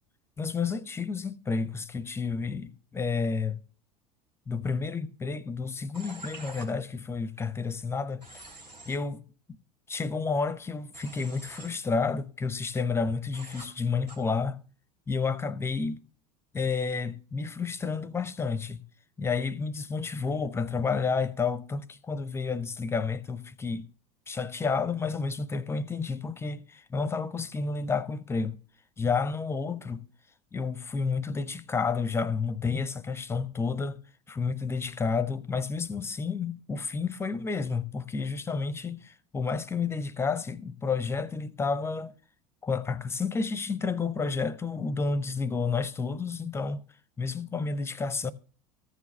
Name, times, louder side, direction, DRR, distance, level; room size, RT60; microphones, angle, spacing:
voice 1, 0.4-3.6 4.5-8.2 8.9-9.2 9.9-14.6 15.1-16.0 16.5-18.8 19.2-23.9 24.3-28.6 29.0-30.1 30.5-34.0 34.3-42.1 42.6-46.8 47.2-48.3, left 4 dB, 10° left, 0.6 m, -30 dB
Human voice / Train, 5.9-6.7 8.2-9.0 10.9-11.7 13.3-13.7 14.1-14.2, right 2 dB, 90° right, 2.8 m, -45 dB
14.0 x 4.7 x 6.5 m
figure-of-eight pair, 75°, 21 cm